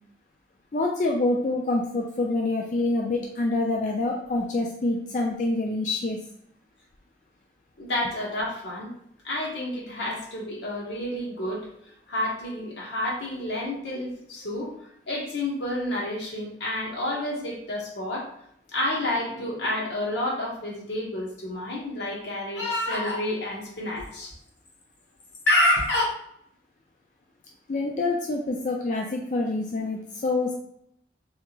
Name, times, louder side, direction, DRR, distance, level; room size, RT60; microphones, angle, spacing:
voice 1, 0.7-6.2 27.7-30.5, left 2 dB, 45° left, 0 dB, 0.3 m, -26 dB
voice 2, 7.8-8.9 9.2-11.7 12.1-14.7 15.1-18.3 18.7-24.3 25.5-26.0, left 1 dB, 85° left, -3 dB, 1.2 m, -29 dB
3.4 x 2.4 x 3.0 m, 0.70 s
head